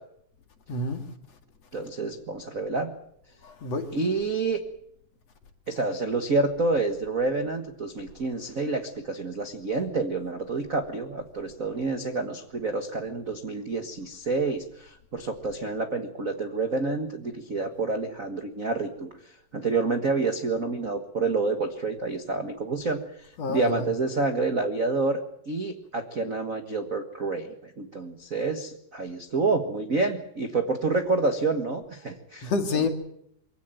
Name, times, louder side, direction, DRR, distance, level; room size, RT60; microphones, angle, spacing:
voice 1, 0.7-1.0 3.4-3.9 23.4-23.9 32.4-32.9, left 3 dB, 50° left, 3.0 m, -28 dB
voice 2, 1.7-2.9 3.9-4.6 5.7-19.1 19.5-25.2 25.5-32.9, right 3 dB, 45° right, 1.1 m, -28 dB
24.0 x 17.0 x 9.1 m
omnidirectional pair, 3.9 m